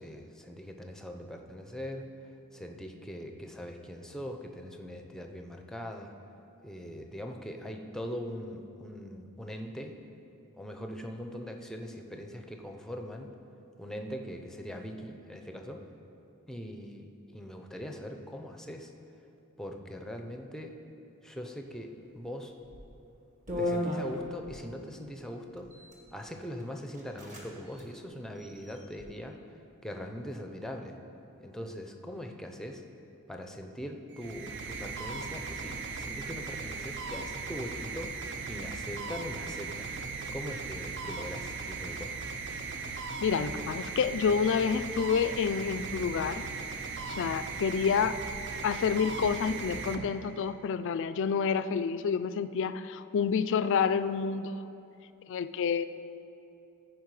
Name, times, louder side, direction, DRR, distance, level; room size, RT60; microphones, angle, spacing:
voice 1, 0.0-2.1 2.5-6.1 6.6-10.0 10.5-13.3 13.8-15.9 16.5-18.9 19.6-20.7 21.2-22.5 23.6-25.7 26.1-29.6 29.8-31.0 31.4-32.8 33.3-39.9 40.3-42.3, equal, ahead, 4 dB, 0.6 m, -41 dB
sound 1, 22.6-22.9 23.5-24.6 25.6-26.0 26.6-26.7 26.9-27.5 27.7-27.9 28.4-29.0, left 1 dB, 35° right, 1.5 m, -35 dB
sound 2, 34.1-50.6, right 4 dB, 55° right, 0.6 m, -38 dB
voice 2, 43.2-46.5 47.2-48.2 48.6-54.5 55.3-55.9, left 6 dB, 60° left, 12 dB, 0.3 m, -28 dB
14.5 x 5.1 x 4.8 m, 2.7 s
head